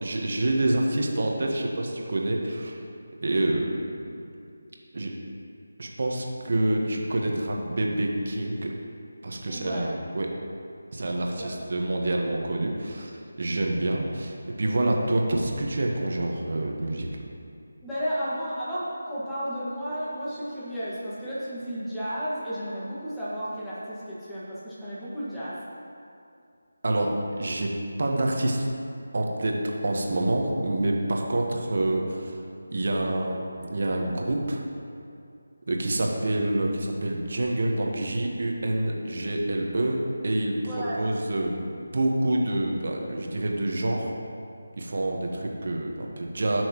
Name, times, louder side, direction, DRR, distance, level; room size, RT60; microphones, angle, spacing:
voice 1, 0.0-2.8 3.2-3.7 4.9-5.1 5.8-8.7 9.2-10.3 10.9-17.1 26.8-27.1 27.4-27.7 28.0-28.7 29.1-32.4 32.7-33.4 33.7-34.6 35.7-44.1 44.8-46.6, right 1 dB, 55° right, 0 dB, 1.4 m, -27 dB
voice 2, 9.5-9.9 11.3-11.6 17.8-25.6 40.6-41.0, equal, 5° left, -12 dB, 1.9 m, -33 dB
16.5 x 6.3 x 3.1 m, 2.5 s
figure-of-eight pair, 165°, 0 cm